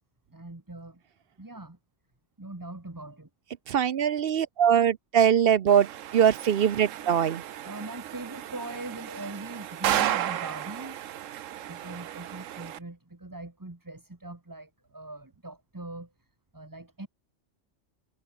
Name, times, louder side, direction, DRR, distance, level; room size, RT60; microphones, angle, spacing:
voice 1, 0.3-1.0 1.4-1.8 2.4-3.3 7.0-7.1 7.6-11.0 11.7-16.1 16.5-17.1, right 2 dB, 15° right, 1.5 m, -41 dB
voice 2, 3.7-5.9 6.1-7.4, right 8 dB, 55° right, 0.8 m, -22 dB
sound 1, 5.7-12.8, right 11 dB, 85° right, 1.1 m, -34 dB
omnidirectional pair, 1.3 m